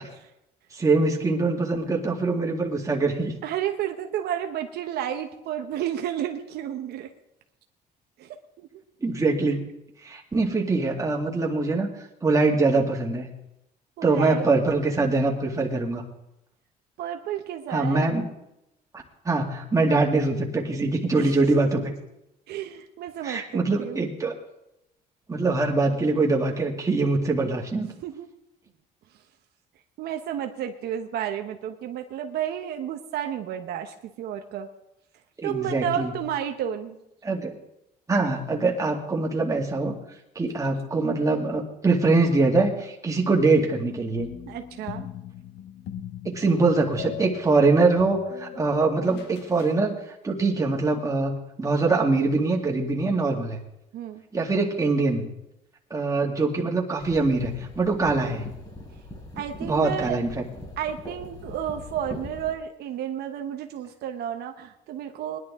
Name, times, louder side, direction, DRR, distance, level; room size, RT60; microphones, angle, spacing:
voice 1, 0.7-3.3 9.0-9.7 10.0-11.9 12.2-13.3 14.0-16.0 17.7-18.2 19.2-21.9 23.2-24.3 25.3-27.9 35.4-36.1 37.2-37.5 38.1-39.9 40.4-44.3 46.2-50.0 50.2-51.3 51.6-53.6 54.3-55.3 55.9-58.4 59.6-60.4, right 3 dB, 20° right, 0 dB, 2.3 m, -23 dB
voice 2, 3.4-7.1 8.2-8.7 14.0-14.6 17.0-18.1 21.1-21.3 21.6-21.7 22.5-24.0 28.0-28.3 30.0-34.7 35.4-37.0 44.5-45.1 53.9-54.2 59.4-60.2 60.8-65.4, right 10 dB, 75° right, 5 dB, 1.0 m, -31 dB
sound 1, 44.2-49.8, left 8 dB, 85° left, 1.5 m, -39 dB
sound 2, 57.0-62.5, left 2 dB, 25° left, 5.9 m, -41 dB
20.0 x 11.0 x 3.7 m, 0.86 s
cardioid pair, 110°, 17 cm